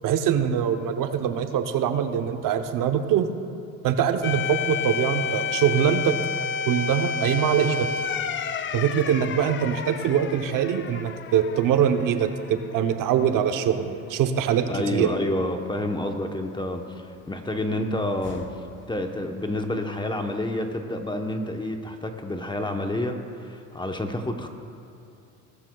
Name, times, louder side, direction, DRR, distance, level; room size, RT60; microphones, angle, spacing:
voice 1, 0.0-3.3 3.8-6.1 6.7-7.9 8.7-15.1, right 8 dB, 60° right, 7 dB, 0.8 m, -23 dB
sound 1, 4.2-12.9 13.2-13.3 18.2-18.8, left 6 dB, 35° left, 0.5 m, -31 dB
voice 2, 14.7-18.5 18.9-24.5, left 1 dB, 10° left, 4 dB, 0.9 m, -29 dB
18.5 x 12.0 x 2.3 m, 2.8 s
supercardioid pair, 90°, 37 cm